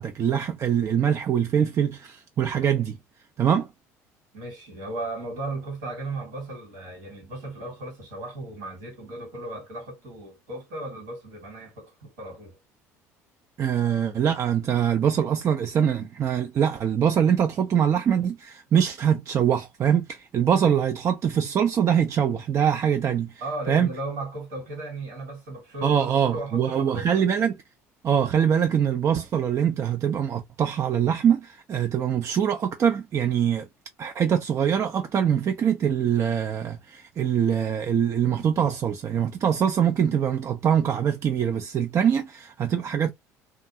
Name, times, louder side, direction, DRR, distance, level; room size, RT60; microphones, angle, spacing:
voice 1, 0.0-3.0 3.4-3.7 13.6-23.3 23.7-23.9 25.8-27.5 28.0-33.7 34.0-43.1, right 8 dB, 35° right, 0.4 m, -23 dB
voice 2, 4.3-12.6 23.4-27.2, right 2 dB, 65° right, 1.5 m, -36 dB
2.5 x 2.4 x 2.7 m
figure-of-eight pair, 60°, 8 cm